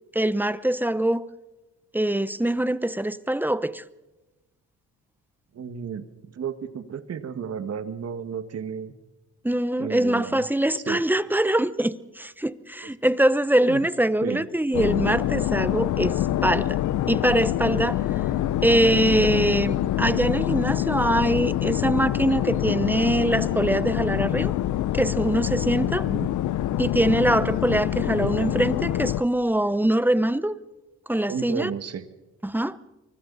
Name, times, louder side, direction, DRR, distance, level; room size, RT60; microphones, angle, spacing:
voice 1, 0.1-1.2 1.9-3.8 9.4-16.8 17.1-18.0 18.6-24.5 24.9-26.1 26.8-30.6 31.1-31.7 32.4-32.8, right 1 dB, 5° right, 0.9 m, -23 dB
voice 2, 5.5-6.0 6.3-8.9 9.8-10.5 10.9-11.0 13.6-13.9 14.2-14.5 18.7-18.9 26.1-26.3 27.3-27.5 31.3-32.0, right 7 dB, 55° right, 1.9 m, -33 dB
sound 1, 14.7-29.2, left 12 dB, 75° left, 0.8 m, -25 dB
29.5 x 24.5 x 4.2 m
cardioid pair, 90°, 30 cm